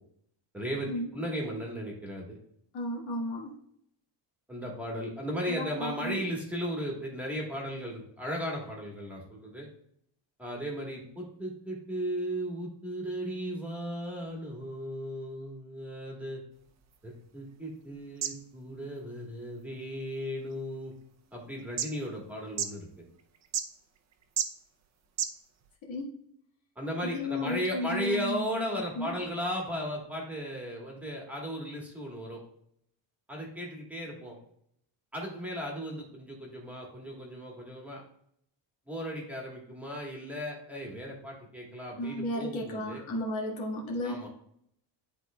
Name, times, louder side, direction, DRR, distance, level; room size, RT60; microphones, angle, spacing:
voice 1, 0.5-2.4 4.5-9.7 10.4-16.4 17.0-20.9 21.3-22.9 26.8-32.4 33.3-34.4 35.1-38.0 38.9-43.0 44.0-44.3, equal, 5° right, -2 dB, 1.3 m, -36 dB
voice 2, 2.7-3.5 5.5-6.2 25.8-26.1 27.0-28.6 29.0-29.1 42.0-44.2, left 1 dB, 90° left, -2 dB, 1.7 m, -34 dB
sound 1, 16.5-25.8, right 8 dB, 35° right, 0.5 m, -40 dB
10.5 x 3.9 x 2.2 m, 0.72 s
cardioid pair, 160°, 46 cm